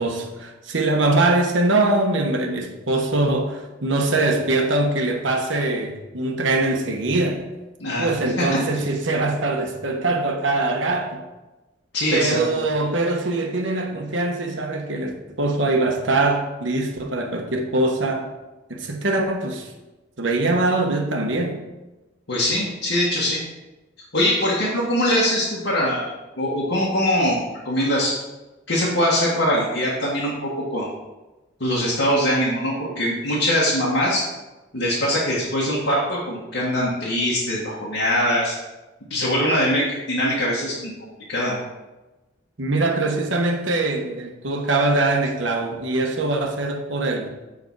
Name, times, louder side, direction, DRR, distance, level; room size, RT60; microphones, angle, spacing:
voice 1, 0.0-7.4 8.0-11.2 12.1-18.3 18.7-19.7 20.2-21.6 42.6-47.5, right 2 dB, 90° right, 3 dB, 1.2 m, -22 dB
voice 2, 7.8-8.1 8.4-8.6 11.9-12.4 22.3-23.4 24.1-26.1 26.4-27.4 27.6-28.1 28.7-30.9 31.6-34.2 34.7-38.6 39.1-40.9 41.3-41.6, equal, 80° left, -6 dB, 1.7 m, -22 dB
8.1 x 4.9 x 4.7 m, 1.1 s
head